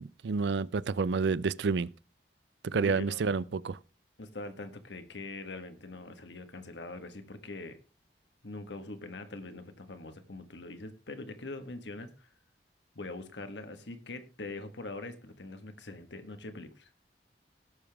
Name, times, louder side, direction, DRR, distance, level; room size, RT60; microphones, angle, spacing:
voice 1, 0.0-1.9 2.6-3.8, right 4 dB, 75° right, 0.4 m, -29 dB
voice 2, 2.7-3.3 4.2-7.8 8.4-12.3 12.9-16.9, left 2 dB, 85° left, 1.5 m, -43 dB
17.5 x 7.0 x 3.5 m
head